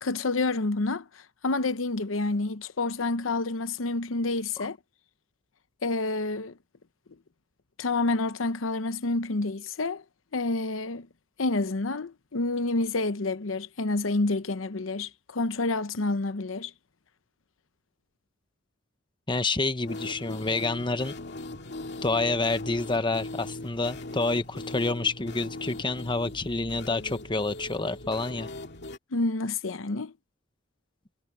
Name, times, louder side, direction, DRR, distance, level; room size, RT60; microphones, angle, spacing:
voice 1, 0.0-4.8 5.8-6.6 7.8-10.0 10.3-11.1 11.4-16.7 29.1-30.1, left 2 dB, 90° left, 0.8 m, -28 dB
voice 2, 19.3-21.1 22.0-28.5, left 3 dB, 25° left, 1.0 m, -28 dB
sound 1, 19.9-29.0, left 2 dB, 60° left, 2.2 m, -40 dB
head